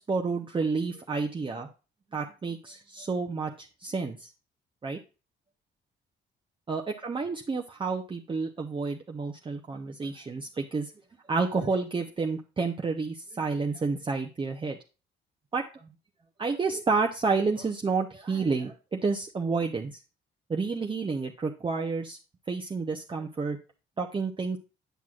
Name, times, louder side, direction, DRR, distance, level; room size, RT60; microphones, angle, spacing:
voice 1, 0.1-1.7 2.1-4.3 4.8-5.0 6.7-10.9 11.3-14.8 15.5-15.6 16.4-20.0 20.5-22.2 22.5-23.6 24.0-24.6, right 4 dB, 25° right, 2 dB, 0.7 m, -30 dB
9.1 x 6.0 x 2.4 m, 0.32 s
cardioid pair, 90°, 20 cm